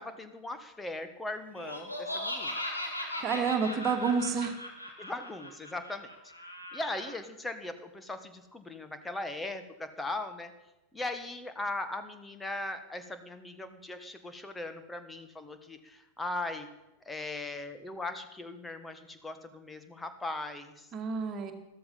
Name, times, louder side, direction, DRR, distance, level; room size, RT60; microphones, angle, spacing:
voice 1, 0.0-2.6 3.2-3.5 5.0-6.1 6.7-10.5 10.9-16.7 17.0-20.9, left 2 dB, 10° left, 9 dB, 1.5 m, -39 dB
Laughter, 1.5-7.1, left 1 dB, 85° left, 2.9 m, -38 dB
voice 2, 3.2-4.5 20.9-21.5, right 5 dB, 30° right, 4 dB, 2.3 m, -29 dB
14.0 x 13.5 x 5.5 m, 0.97 s
figure-of-eight pair, 90°, 0 cm